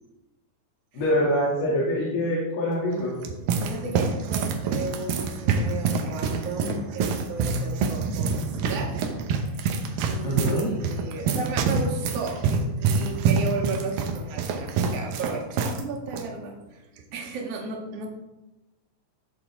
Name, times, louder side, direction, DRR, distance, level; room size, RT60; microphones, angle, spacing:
voice 1, 0.9-3.1 10.2-10.7, equal, 85° left, -7 dB, 4.6 m, -24 dB
sound 1, 2.9-16.2 17.0-17.3, right 4 dB, 70° right, 2.5 m, -26 dB
voice 2, 3.6-9.0 9.4-9.7 10.0-16.8 17.1-18.1, right 4 dB, 50° right, 0 dB, 2.5 m, -34 dB
18.0 x 6.8 x 3.7 m, 1.0 s
omnidirectional pair, 4.5 m